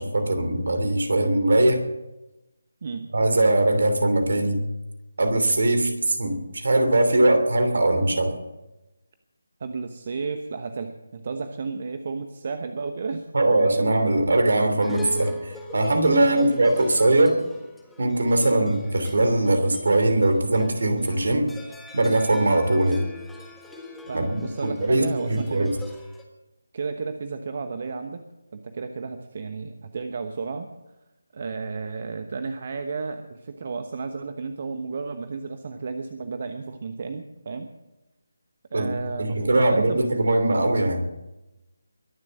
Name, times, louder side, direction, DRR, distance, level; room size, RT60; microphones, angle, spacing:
voice 1, 0.0-1.8 3.1-4.6 5.2-8.3 13.3-17.4 18.0-21.5 21.9-23.0 24.1-25.8 38.7-38.9 39.2-41.0, right 2 dB, 65° right, 8 dB, 3.0 m, -21 dB
voice 2, 9.6-13.3 13.6-13.8 16.2-16.5 18.5-18.7 24.1-25.7 26.7-28.2 28.5-30.7 31.3-37.7 38.7-40.1, right 4 dB, 45° right, 8 dB, 1.1 m, -32 dB
sound 1, 14.8-26.2, equal, 5° left, 1.6 m, -41 dB
22.5 x 7.5 x 7.6 m, 1.0 s
figure-of-eight pair, 155°, 0 cm